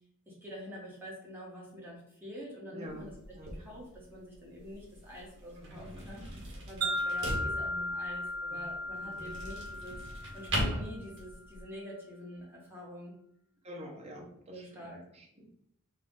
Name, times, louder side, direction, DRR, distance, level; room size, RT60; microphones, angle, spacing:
voice 1, 0.3-3.1 3.4-6.2 6.7-10.0 10.3-13.1 14.1-15.0, equal, 10° right, -6 dB, 1.6 m, -46 dB
voice 2, 2.7-3.1 3.3-3.5 5.6-6.0 8.5-8.6 9.0-9.4 13.6-15.5, equal, 30° right, -2 dB, 1.1 m, -47 dB
sound 1, 2.9-11.6, equal, 60° right, 1.5 m, -40 dB
Wind chime, 6.8-11.1, left 1 dB, 90° right, 1.0 m, -36 dB
4.6 x 2.8 x 3.8 m, 0.71 s
head